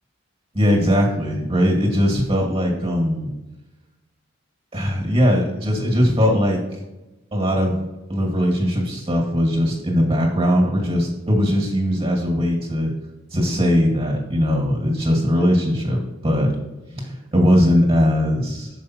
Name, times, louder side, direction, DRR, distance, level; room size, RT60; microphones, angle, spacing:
voice 1, 0.5-3.3 4.7-6.6 7.3-7.8 8.1-12.9 13.3-16.5 16.9-18.7, equal, 30° right, 0 dB, 1.8 m, -20 dB
6.5 x 5.3 x 4.4 m, 1.0 s
head